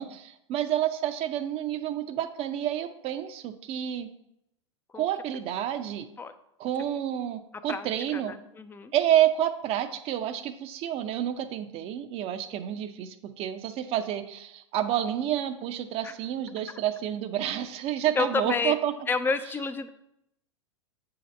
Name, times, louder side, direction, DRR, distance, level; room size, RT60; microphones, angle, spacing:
voice 1, 0.0-4.1 4.9-6.1 6.6-8.3 8.9-18.9, right 11 dB, 35° right, 9 dB, 0.6 m, -29 dB
voice 2, 7.7-8.9 16.0-16.1 16.7-16.8 18.2-18.8 19.1-19.9, left 4 dB, 15° left, 10 dB, 0.4 m, -30 dB
7.6 x 2.9 x 5.2 m, 0.80 s
hypercardioid pair, 105°, 16 cm